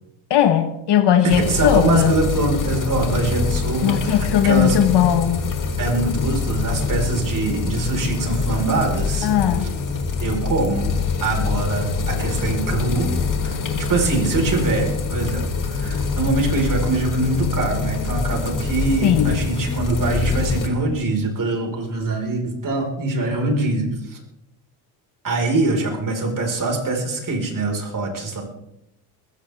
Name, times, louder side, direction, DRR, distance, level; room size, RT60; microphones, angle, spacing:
voice 1, 0.3-2.1 3.8-5.4 9.2-9.7 19.0-19.4, left 10 dB, 55° left, 9 dB, 1.4 m, -18 dB
voice 2, 1.2-4.8 5.8-9.3 9.6-9.7 10.2-10.9 11.2-13.1 13.4-24.2 25.2-28.4, right 3 dB, 40° right, 2 dB, 5.0 m, -23 dB
sound 1, 1.3-20.7, left 5 dB, 40° left, 2.8 m, -25 dB
20.5 x 15.5 x 3.6 m, 0.83 s
cardioid pair, 105°, 50 cm